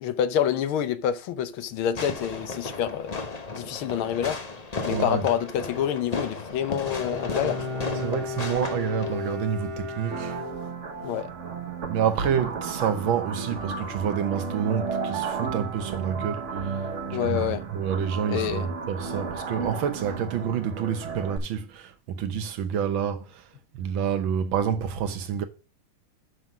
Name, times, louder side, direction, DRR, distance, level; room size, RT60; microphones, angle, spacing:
voice 1, 0.0-3.1 3.5-4.4 4.9-7.9 11.0-11.3 17.1-17.6 18.3-18.7, left 9 dB, 80° left, 1.7 m, -27 dB
Fireworks, 1.9-9.4, left 3 dB, 40° left, 0.5 m, -34 dB
voice 2, 4.9-5.3 8.0-10.4 11.9-17.4 17.7-23.5 23.7-25.4, right 8 dB, 70° right, 1.7 m, -28 dB
Bowed string instrument, 6.7-11.1, left 3 dB, 25° right, 0.6 m, -34 dB
sound 1, 10.1-21.4, right 5 dB, 40° right, 1.3 m, -33 dB
6.9 x 5.5 x 6.0 m
omnidirectional pair, 2.3 m